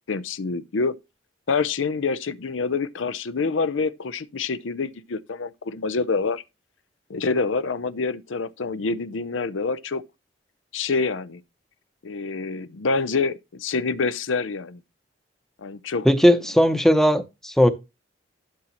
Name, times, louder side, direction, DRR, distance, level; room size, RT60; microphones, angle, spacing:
voice 1, 0.1-0.9 1.5-6.4 7.1-10.0 10.7-11.4 12.0-14.8 15.6-16.1, left 4 dB, 90° left, 0.6 m, -26 dB
voice 2, 16.0-17.7, equal, ahead, 0.7 m, -17 dB
12.0 x 6.3 x 3.0 m
head